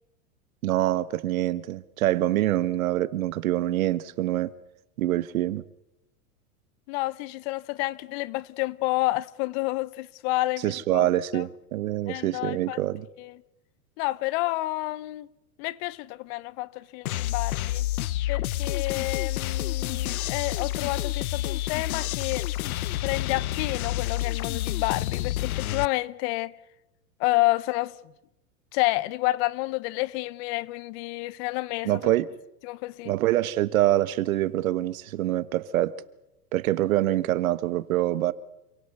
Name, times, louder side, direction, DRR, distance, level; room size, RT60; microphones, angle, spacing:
voice 1, 0.6-4.5 5.0-5.6 10.6-13.1 31.8-32.3 33.0-35.9 36.5-38.3, right 14 dB, 65° right, 1.4 m, -25 dB
voice 2, 6.9-11.5 12.1-12.8 13.2-13.3 14.0-15.3 15.6-17.8 18.3-22.5 23.0-26.5 27.2-28.0 28.7-31.9 32.6-33.1, left 20 dB, 45° left, 1.0 m, -29 dB
sound 1, 17.1-25.9, left 14 dB, 70° left, 0.8 m, -29 dB
28.0 x 17.5 x 8.2 m
hypercardioid pair, 105°, 44 cm